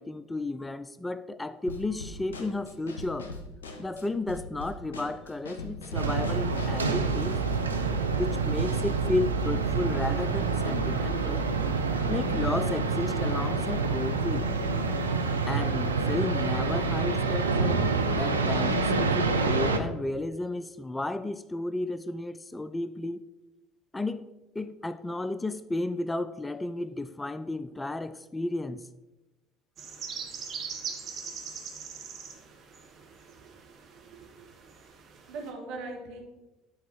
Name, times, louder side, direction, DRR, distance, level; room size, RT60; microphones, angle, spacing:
voice 1, 0.0-3.3 3.8-7.4 8.1-11.5 12.1-14.5 15.5-17.8 18.1-23.2 23.9-24.3 24.5-28.9, left 2 dB, 15° left, 14 dB, 0.3 m, -33 dB
Drum kit / Snare drum, 1.7-6.9, left 2 dB, 80° left, 0.8 m, -41 dB
sound 1, 5.9-19.8, right 4 dB, 90° right, 0.5 m, -27 dB
sound 2, 29.8-35.5, right 6 dB, 45° right, 1.2 m, -41 dB
voice 2, 33.3-34.8 35.3-36.2, right 3 dB, 60° right, 0 dB, 1.8 m, -42 dB
9.4 x 4.5 x 4.2 m, 1.1 s
figure-of-eight pair, 65°, 0 cm